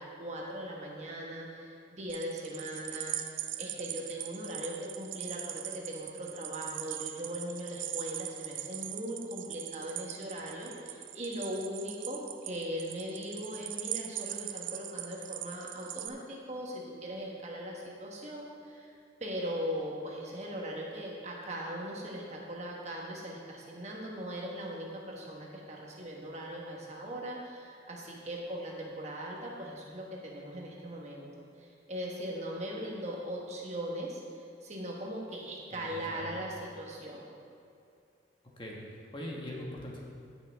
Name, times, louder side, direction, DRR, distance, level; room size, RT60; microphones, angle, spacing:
voice 1, 0.0-18.9 19.2-31.3 31.6-37.2, equal, 35° right, -2 dB, 1.3 m, -39 dB
sound 1, 2.1-16.1, right 13 dB, 90° right, 0.5 m, -40 dB
voice 2, 35.7-36.4 38.6-40.0, left 1 dB, 25° left, -2 dB, 1.2 m, -42 dB
16.5 x 6.2 x 3.5 m, 2.5 s
head